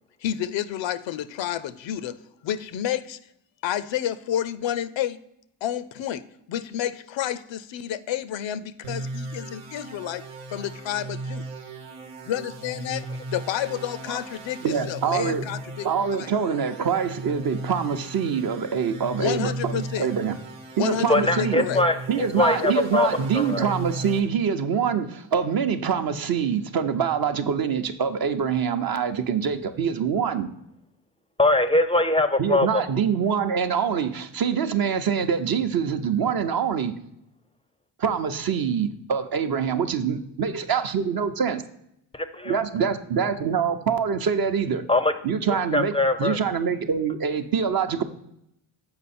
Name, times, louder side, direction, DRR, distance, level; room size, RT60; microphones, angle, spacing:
voice 1, 0.2-2.2 2.4-3.2 3.6-5.2 5.6-6.2 6.5-10.2 10.5-11.5 12.3-13.0 13.3-15.9 16.2-16.3 19.2-20.1 20.8-21.8, left 11 dB, 65° left, 13 dB, 0.5 m, -30 dB
sound 1, 8.8-24.2, right 2 dB, 90° right, 1.1 m, -36 dB
voice 2, 14.6-15.4 15.8-20.4 20.8-21.7 22.1-30.5 32.4-36.9 38.0-41.6 42.4-44.8 45.2-48.0, right 7 dB, 45° right, 8 dB, 0.7 m, -25 dB
voice 3, 21.1-23.7 31.4-32.8 42.1-42.6 44.9-45.1 45.7-46.4, left 2 dB, 10° left, 11 dB, 0.5 m, -22 dB
6.9 x 4.7 x 4.2 m, 0.77 s
cardioid pair, 65°, 49 cm